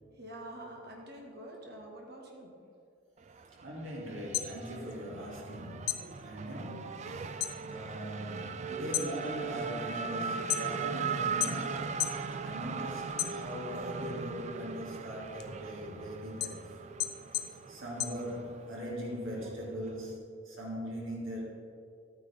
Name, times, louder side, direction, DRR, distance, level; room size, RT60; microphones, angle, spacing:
voice 1, 0.2-2.5, right 1 dB, 55° right, -1 dB, 1.7 m, -46 dB
Race car auto racing / Accelerating revving vroom, 3.2-20.2, right 5 dB, 35° right, 0.3 m, -39 dB
voice 2, 3.6-12.0 12.4-16.6 17.7-21.4, equal, 85° right, -3 dB, 2.4 m, -40 dB
sound 1, 4.1-5.5 5.8-7.6 8.0-8.4 8.8-11.0 11.4-12.3 12.6-13.8 14.3-18.8, left 13 dB, 50° left, 0.6 m, -36 dB
12.5 x 9.3 x 3.5 m, 2.4 s
head